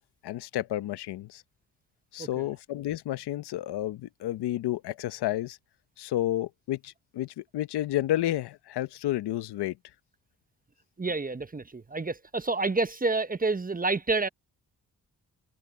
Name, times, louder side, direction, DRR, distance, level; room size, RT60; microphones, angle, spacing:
voice 1, 0.2-1.4 2.1-5.6 6.0-9.7, left 14 dB, 85° left, 1.0 m, -31 dB
voice 2, 2.2-2.5 11.0-14.3, right 3 dB, 20° right, 1.0 m, -29 dB
open air
supercardioid pair, 40°, 39 cm